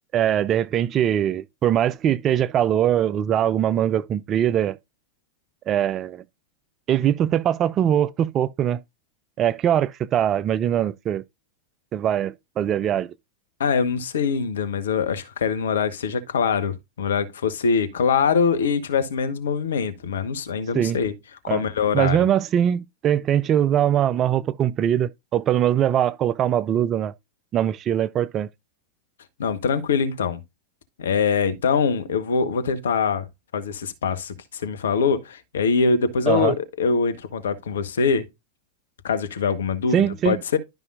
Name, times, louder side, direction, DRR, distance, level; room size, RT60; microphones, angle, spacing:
voice 1, 0.1-4.8 5.7-6.2 6.9-8.8 9.4-11.2 11.9-13.1 20.7-21.0 21.5-21.6 21.9-27.1 27.5-28.5 36.3-36.5 39.9-40.4, right 10 dB, 30° right, 0.5 m, -22 dB
voice 2, 13.6-21.1 21.4-22.2 29.4-30.4 31.0-33.3 33.5-38.3 39.0-40.6, left 5 dB, 65° left, 1.3 m, -23 dB
12.0 x 5.5 x 2.5 m
figure-of-eight pair, 90°, 0 cm